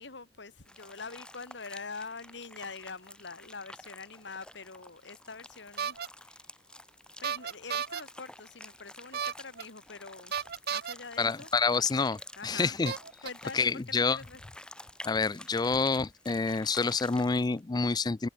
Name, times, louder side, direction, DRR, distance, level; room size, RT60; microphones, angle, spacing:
voice 1, 0.0-6.5 7.2-11.5 11.8-11.9 12.4-12.7 13.2-14.4, left 4 dB, 65° left, 2.0 m, -45 dB
sound 1, 0.6-17.6, left 1 dB, 5° left, 3.0 m, -51 dB
sound 2, 5.8-6.1 7.2-8.0 9.1-9.6 10.3-10.9 12.0-12.1 12.9-13.3, right 7 dB, 55° right, 0.8 m, -33 dB
voice 2, 11.2-12.9 13.5-14.2 15.1-18.3, left 4 dB, 20° left, 0.4 m, -28 dB
head